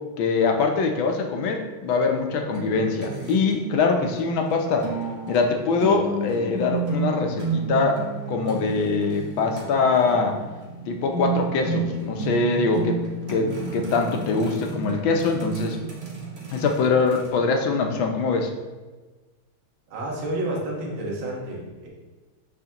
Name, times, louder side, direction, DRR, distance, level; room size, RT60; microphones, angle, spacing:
voice 1, 0.2-4.9 5.3-8.0 8.3-10.3 10.9-13.0 13.3-15.8 16.5-18.5, left 4 dB, 70° left, 3 dB, 1.5 m, -23 dB
sound 1, 2.5-17.3, right 4 dB, 45° right, 1.5 m, -32 dB
voice 2, 19.9-21.9, right 1 dB, 70° right, -3 dB, 2.1 m, -30 dB
8.1 x 5.1 x 2.9 m, 1.3 s
omnidirectional pair, 2.3 m